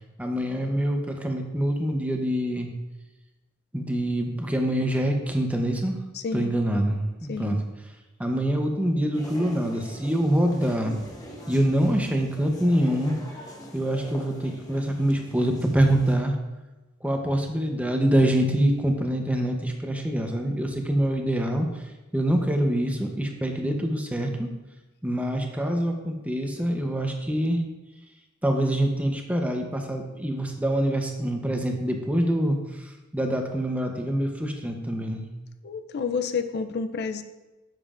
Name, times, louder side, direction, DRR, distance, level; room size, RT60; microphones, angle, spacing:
voice 1, 0.2-2.7 3.7-6.0 6.3-7.6 8.2-10.9 11.5-13.2 13.7-16.3 17.0-21.7 22.1-24.5 25.0-27.6 28.4-32.6 33.1-35.3, right 1 dB, 5° right, 3 dB, 0.8 m, -25 dB
voice 2, 6.1-6.5 7.3-7.5 35.6-37.2, left 5 dB, 55° left, 9 dB, 0.4 m, -29 dB
sound 1, 9.1-16.1, left 1 dB, 20° left, 1.1 m, -43 dB
9.9 x 7.3 x 2.5 m, 1.1 s
head